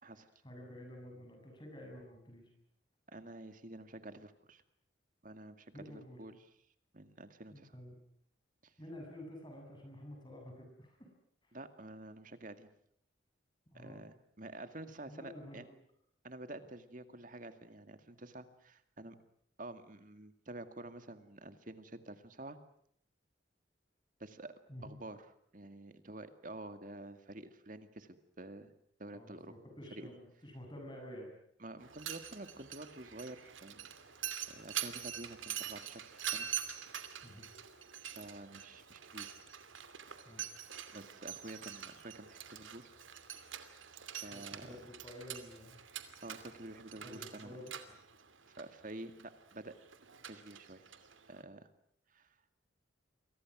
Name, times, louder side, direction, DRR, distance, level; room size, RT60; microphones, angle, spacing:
voice 1, 0.1-2.5 5.7-6.2 7.5-8.0 8.8-11.1 11.4-11.5 13.7-14.0 15.1-15.7 24.7-24.9 29.1-31.4 37.2-37.5 40.2-40.4 44.3-45.8 47.0-48.0, left 1 dB, 25° left, 1 dB, 7.7 m, -50 dB
voice 2, 3.1-4.6 5.2-6.4 6.9-7.8 8.6-8.7 11.5-12.7 13.7-15.6 16.2-19.2 19.6-22.6 24.2-24.5 24.8-25.3 25.5-28.7 29.0-29.5 29.9-30.1 31.6-33.9 34.5-36.5 38.2-39.4 40.9-42.8 44.2-44.8 46.2-47.5 48.6-49.7 50.3-50.9 51.3-51.7 52.1-52.4, right 2 dB, 45° right, 9 dB, 2.1 m, -49 dB
Mechanisms, 31.8-51.4, right 9 dB, 85° right, 2.7 m, -45 dB
29.5 x 24.0 x 6.2 m, 0.67 s
head